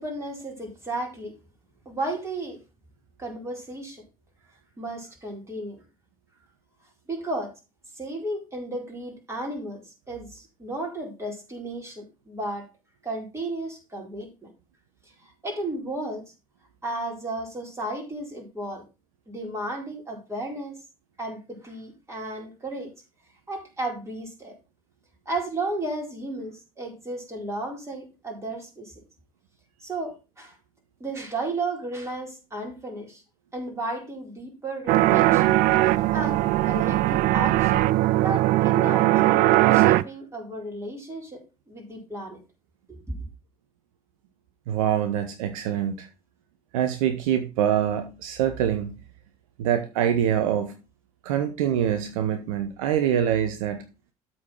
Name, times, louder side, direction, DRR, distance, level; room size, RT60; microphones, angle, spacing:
voice 1, 0.0-1.3 1.9-2.6 3.2-4.0 4.8-5.8 7.1-7.5 7.9-12.7 13.0-14.5 15.4-16.2 16.8-18.8 19.3-20.8 21.2-22.9 23.5-24.5 25.3-28.9 29.8-30.5 31.0-33.2 33.5-35.5 36.1-37.8 38.2-41.4 41.7-42.4 42.9-43.0, right 2 dB, 15° right, 4.4 m, -33 dB
sound 1, 34.9-40.0, right 16 dB, 50° right, 0.4 m, -20 dB
voice 2, 44.7-46.1 46.7-49.0 49.6-50.8 51.2-53.8, right 10 dB, 65° right, 0.9 m, -25 dB
13.0 x 4.4 x 4.5 m
figure-of-eight pair, 60°, 19 cm